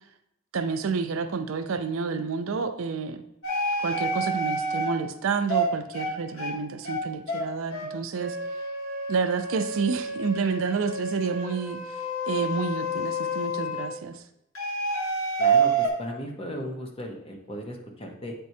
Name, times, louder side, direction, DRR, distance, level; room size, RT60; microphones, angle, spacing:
voice 1, 0.5-3.2 3.8-8.4 9.1-14.2, right 5 dB, 70° right, 9 dB, 0.5 m, -29 dB
sound 1, 3.4-4.9 5.5-5.7 5.9-6.1 6.4-6.5 6.8-7.0 7.3-7.4 7.7-7.9 8.2-13.9 14.6-15.9, right 2 dB, 80° left, 1.2 m, -28 dB
voice 2, 15.4-18.3, equal, 25° left, 1 dB, 0.9 m, -36 dB
8.3 x 4.5 x 2.7 m, 0.81 s
head